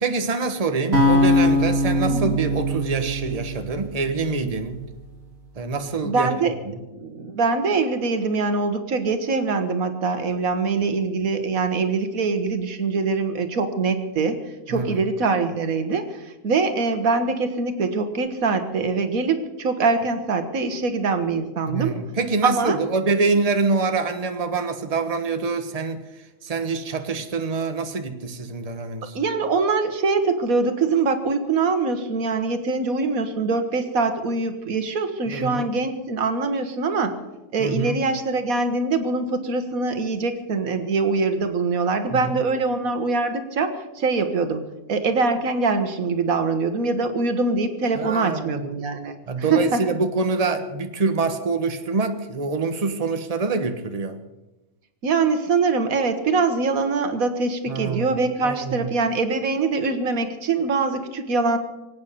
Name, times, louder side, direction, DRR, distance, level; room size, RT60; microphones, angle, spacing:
voice 1, 0.0-4.8 5.6-6.3 6.6-6.8 14.7-15.0 21.7-26.0 26.4-29.2 35.3-35.7 37.6-38.0 42.1-42.4 47.9-48.7 49.3-54.2 57.7-58.9, right 4 dB, 30° right, 7 dB, 1.2 m, -25 dB
sound 1, 0.9-5.1, left 1 dB, 50° right, 2.6 m, -22 dB
voice 2, 6.0-6.5 6.9-14.4 14.7-22.0 22.4-22.8 29.2-37.2 37.5-44.6 44.9-49.2 49.5-49.8 55.0-61.6, right 4 dB, 85° right, 8 dB, 1.8 m, -23 dB
24.0 x 8.8 x 6.8 m, 1.0 s
omnidirectional pair, 1.4 m